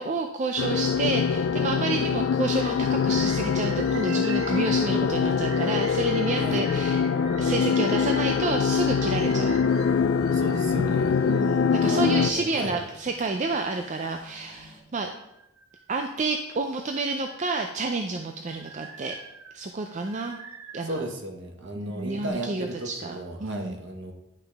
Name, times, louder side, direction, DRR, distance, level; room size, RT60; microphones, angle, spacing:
voice 1, 0.0-7.0 7.4-9.6 10.8-11.0 11.3-15.1 15.9-19.2 19.5-20.4 20.7-21.0 21.8-23.8, right 3 dB, 35° right, 4 dB, 0.4 m, -29 dB
sound 1, 0.6-12.3, left 6 dB, 55° left, 0.3 m, -24 dB
Bird, 2.6-11.5 12.0-13.0 13.5-14.6 15.0-16.4 16.9-21.1 21.8-22.3, right 7 dB, 80° right, 0.8 m, -46 dB
sound 2, 9.6-14.8, left 1 dB, 10° right, 1.9 m, -53 dB
voice 2, 10.3-11.2 11.9-12.8 20.8-24.1, right 1 dB, 55° right, 3 dB, 1.1 m, -35 dB
10.5 x 5.7 x 3.4 m, 0.85 s
head